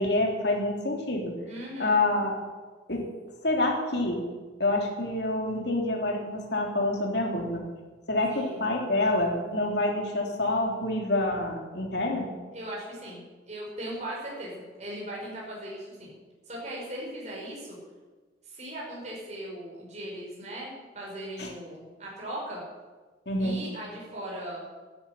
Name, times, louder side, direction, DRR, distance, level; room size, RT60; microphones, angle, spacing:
voice 1, 0.0-1.3 1.8-2.4 2.9-3.0 3.4-4.2 4.6-7.6 8.1-12.3 21.4-21.5 23.3-23.6, left 2 dB, 60° left, 1 dB, 3.4 m, -27 dB
voice 2, 1.5-1.9 8.3-8.6 12.5-13.2 13.5-16.1 16.5-17.8 18.4-22.6 23.4-24.7, right 1 dB, 40° right, -4 dB, 5.4 m, -38 dB
12.5 x 11.5 x 9.2 m, 1.3 s
head